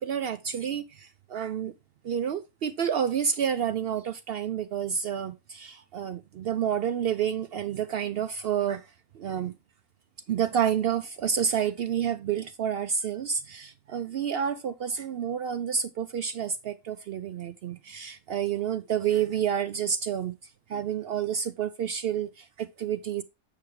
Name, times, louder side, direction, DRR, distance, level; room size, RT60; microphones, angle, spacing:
voice 1, 0.0-1.7 2.0-8.9 9.1-9.5 10.3-23.2, right 8 dB, 85° right, 0.5 m, -29 dB
8.5 x 5.7 x 3.2 m
omnidirectional pair, 1.6 m